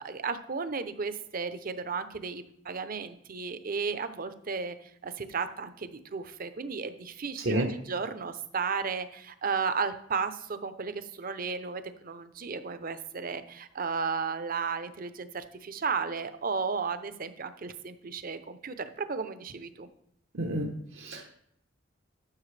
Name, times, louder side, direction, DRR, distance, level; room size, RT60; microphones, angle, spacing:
voice 1, 0.0-19.9, right 5 dB, 50° right, 11 dB, 0.7 m, -34 dB
voice 2, 20.3-21.3, right 1 dB, 75° right, 0 dB, 1.1 m, -30 dB
12.5 x 6.3 x 3.3 m, 0.72 s
head